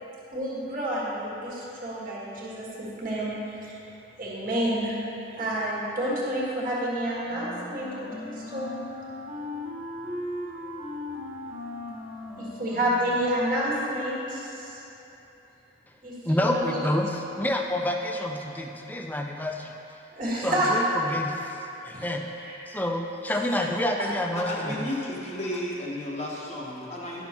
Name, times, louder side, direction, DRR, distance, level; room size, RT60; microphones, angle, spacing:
voice 1, 0.3-3.8 4.2-5.0 5.3-8.7 12.4-14.8 16.0-16.7 20.1-20.7 21.9-22.0 22.4-22.5 23.3-23.7 24.0-24.1, right 1 dB, 45° right, -6 dB, 1.5 m, -29 dB
Wind instrument woodwind instrument, 7.3-13.3, left 1 dB, 15° right, 1.5 m, -38 dB
voice 2, 16.3-19.7 20.4-20.8 21.1-22.3 22.7-24.9, left 1 dB, 10° left, 2 dB, 0.4 m, -28 dB
voice 3, 24.3-27.2, left 1 dB, 35° left, -4 dB, 1.0 m, -33 dB
11.5 x 5.9 x 2.9 m, 2.9 s
head